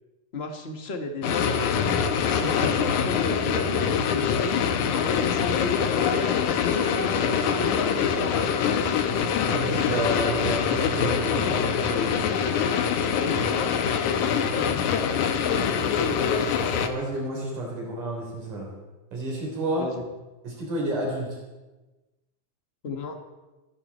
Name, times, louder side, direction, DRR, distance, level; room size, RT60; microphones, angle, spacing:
voice 1, 0.3-8.5 13.2-13.8 14.5-16.2 19.8-20.0 22.8-23.1, left 3 dB, 30° left, 5 dB, 1.1 m, -34 dB
sound 1, 1.2-16.9, left 7 dB, 75° left, 2.5 m, -24 dB
voice 2, 2.3-2.7 9.4-12.3 16.6-18.7 19.1-19.9 20.4-21.4, right 1 dB, 75° right, -2 dB, 5.7 m, -31 dB
28.5 x 11.0 x 4.4 m, 1.1 s
omnidirectional pair, 3.6 m